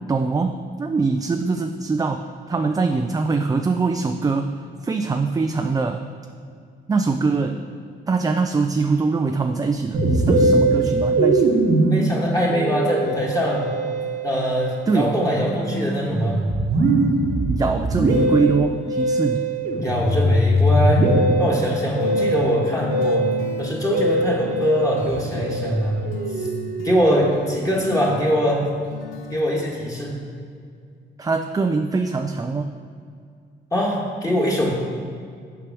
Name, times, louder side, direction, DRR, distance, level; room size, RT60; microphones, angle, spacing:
voice 1, 0.0-4.5 4.8-6.0 6.9-7.7 8.1-11.6 14.9-15.2 17.5-19.5 31.2-32.7, right 4 dB, 20° right, 6 dB, 0.3 m, -23 dB
Musical instrument, 9.9-27.5, right 1 dB, 50° right, 1.0 m, -22 dB
voice 2, 11.9-13.7 14.2-16.4 19.7-21.0 21.4-23.3 23.6-26.0 26.4-26.5 26.8-28.6 29.3-30.1 33.7-34.7, equal, 15° left, -3 dB, 1.6 m, -22 dB
sound 1, 22.0-30.4, left 5 dB, 75° left, 0.7 m, -36 dB
6.7 x 4.8 x 6.0 m, 2.2 s
cardioid pair, 90°, 20 cm